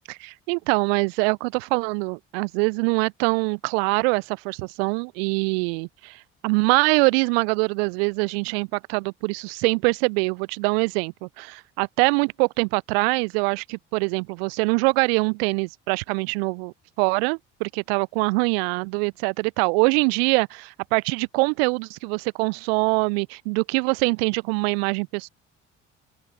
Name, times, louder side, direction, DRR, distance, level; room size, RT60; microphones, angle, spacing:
voice 1, 0.1-6.2 6.4-25.3, right 32 dB, 60° right, 0.4 m, -24 dB
open air
figure-of-eight pair, 50°, 36 cm